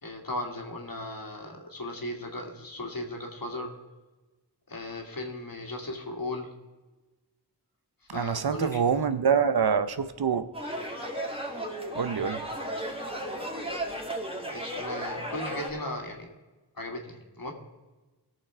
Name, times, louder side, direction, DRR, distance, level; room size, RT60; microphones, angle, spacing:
voice 1, 0.0-3.7 4.7-6.5 8.1-8.8 14.5-16.3 16.7-17.5, left 1 dB, 50° left, 1.9 m, -36 dB
voice 2, 8.1-10.4 11.9-12.4, right 6 dB, 60° right, 0.7 m, -25 dB
sound 1, 10.5-15.7, right 1 dB, 15° right, 2.2 m, -34 dB
18.0 x 6.7 x 4.4 m
wide cardioid pair, 45°, 43 cm